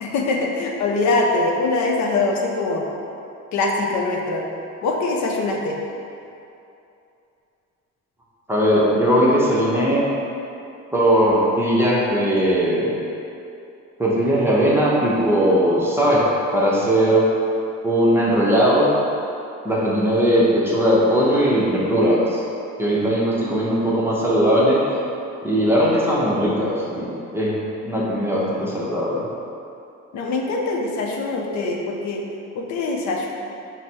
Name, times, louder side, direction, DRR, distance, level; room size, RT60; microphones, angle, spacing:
voice 1, 0.0-2.9 3.5-4.5 4.8-5.8 30.1-32.2 32.5-33.3, left 3 dB, 70° left, 0 dB, 0.5 m, -23 dB
voice 2, 8.5-10.1 10.9-13.0 14.0-16.2 16.5-17.3 17.8-18.9 19.6-22.4 22.8-24.8 25.4-27.6 27.8-29.3, equal, 10° right, -7 dB, 0.6 m, -19 dB
4.8 x 2.0 x 4.3 m, 2.7 s
cardioid pair, 145°, 29 cm